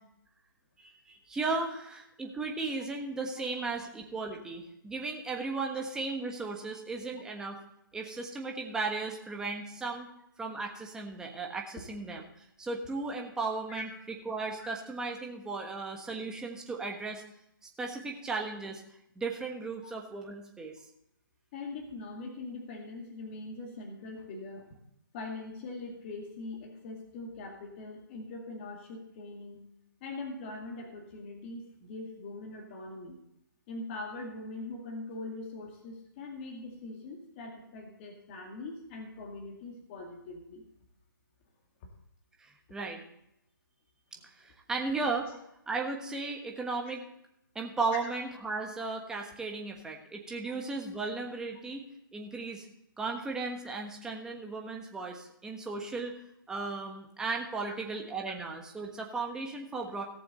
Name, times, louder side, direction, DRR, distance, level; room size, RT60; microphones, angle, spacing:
voice 1, 0.8-7.6 7.9-10.1 10.4-17.2 17.8-18.8 19.1-20.8 42.4-43.0 44.4-45.3 45.7-47.1 47.5-51.9 52.1-52.7 53.0-56.2 56.5-60.0, right 3 dB, 5° right, 1 dB, 1.3 m, -36 dB
voice 2, 21.5-24.8 25.1-29.6 30.0-33.2 33.7-40.6 45.2-45.3 46.9-47.0 47.9-48.1, left 3 dB, 30° left, 1 dB, 2.2 m, -42 dB
17.5 x 7.0 x 4.2 m, 0.79 s
hypercardioid pair, 155°, 12 cm